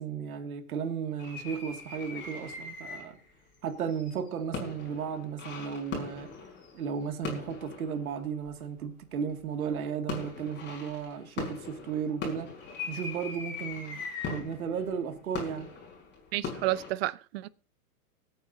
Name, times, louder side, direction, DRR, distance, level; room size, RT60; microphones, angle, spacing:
voice 1, 0.0-3.2 3.6-6.3 6.7-12.5 12.9-15.7, right 7 dB, 75° right, 2.4 m, -34 dB
sound 1, 1.2-3.3 3.7-8.6 9.3-9.7 10.1-16.9, left 5 dB, 25° left, 5.1 m, -40 dB
voice 2, 16.3-17.5, right 17 dB, 45° right, 0.7 m, -31 dB
25.0 x 9.1 x 2.8 m
hypercardioid pair, 130°, 44 cm